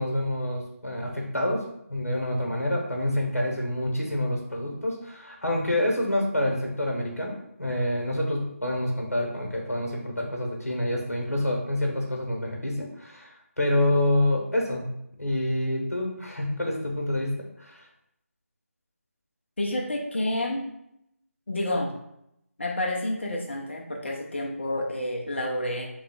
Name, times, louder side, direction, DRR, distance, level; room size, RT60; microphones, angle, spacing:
voice 1, 0.0-1.6 1.9-14.9 15.2-17.8, left 1 dB, 80° left, 0 dB, 1.1 m, -27 dB
voice 2, 19.6-20.6 21.5-21.9 22.6-25.9, left 1 dB, 50° left, 0 dB, 0.7 m, -29 dB
3.5 x 2.3 x 3.7 m, 0.79 s
figure-of-eight pair, 160°, 8 cm